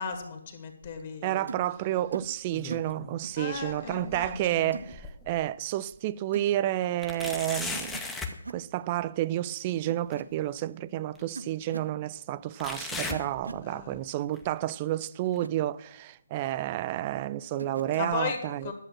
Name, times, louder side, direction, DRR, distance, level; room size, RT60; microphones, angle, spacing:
voice 1, 0.0-1.4 3.4-4.8 13.6-14.1 18.0-18.7, left 5 dB, 35° left, 1.8 m, -36 dB
voice 2, 1.2-8.0 8.5-18.7, right 13 dB, 25° right, 0.3 m, -30 dB
sound 1, 1.5-1.7 2.1-2.3 2.7-2.9 3.2-3.5 4.7-4.9 6.3-6.6 7.7-8.0 8.3-8.6 9.9-10.2 11.4-11.9 13.1-13.7 15.3-15.5 17.6-18.1, right 3 dB, 65° right, 0.8 m, -41 dB
sound 2, 2.2-3.2 3.5-5.4 5.9-6.0 7.0-8.4 10.1-10.2 11.1-11.2 12.6-14.0 14.3-14.7 15.4-15.5 16.3-16.4, left 3 dB, 5° left, 0.7 m, -38 dB
11.0 x 7.3 x 6.1 m
figure-of-eight pair, 145°, 0 cm